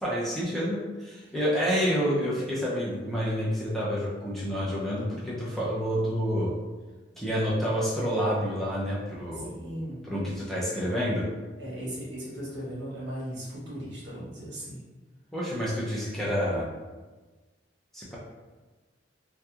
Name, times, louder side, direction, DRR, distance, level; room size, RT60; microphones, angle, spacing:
voice 1, 0.0-6.5 7.2-9.5 10.0-11.2 15.3-16.7 17.9-18.2, equal, ahead, -7 dB, 0.5 m, -28 dB
voice 2, 9.3-10.0 11.6-14.8, equal, 75° right, -7 dB, 1.1 m, -37 dB
2.7 x 2.2 x 2.3 m, 1.3 s
head